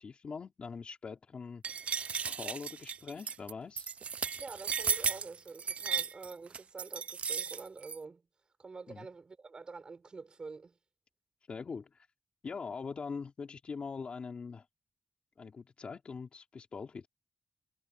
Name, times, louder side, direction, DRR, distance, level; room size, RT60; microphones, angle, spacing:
voice 1, 0.0-1.6 2.2-3.9 8.9-9.1 11.5-12.1 12.4-14.7 15.4-17.1, left 5 dB, 55° left, 3.1 m, -42 dB
sound 1, 1.6-8.0, right 6 dB, 65° right, 0.5 m, -35 dB
voice 2, 4.4-8.2 8.6-10.8, right 4 dB, 40° right, 4.8 m, -47 dB
wide cardioid pair, 135°, 2 cm